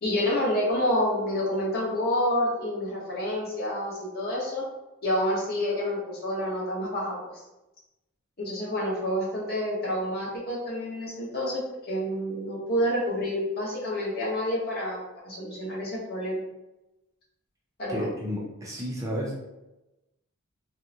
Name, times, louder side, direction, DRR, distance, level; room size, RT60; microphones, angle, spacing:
voice 1, 0.0-4.6 5.0-7.3 8.4-11.6 11.9-15.0 15.2-16.4 17.8-18.1, left 1 dB, 45° left, -4 dB, 0.9 m, -28 dB
voice 2, 17.9-19.4, equal, 15° right, -4 dB, 0.5 m, -32 dB
3.5 x 2.0 x 2.7 m, 0.97 s
head